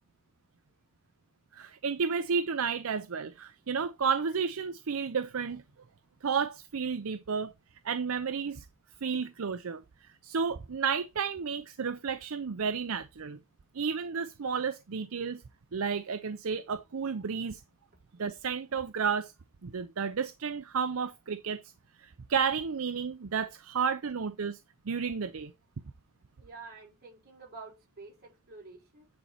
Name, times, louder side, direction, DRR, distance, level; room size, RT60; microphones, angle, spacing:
voice 1, 1.5-5.6 6.2-7.5 7.8-8.6 9.0-13.4 13.7-15.4 15.7-17.6 18.2-19.3 19.6-21.6 22.0-24.6 24.9-25.5, right 6 dB, 70° right, 0.6 m, -32 dB
voice 2, 26.4-29.1, right 3 dB, 45° right, 5.4 m, -49 dB
9.6 x 4.3 x 4.2 m
head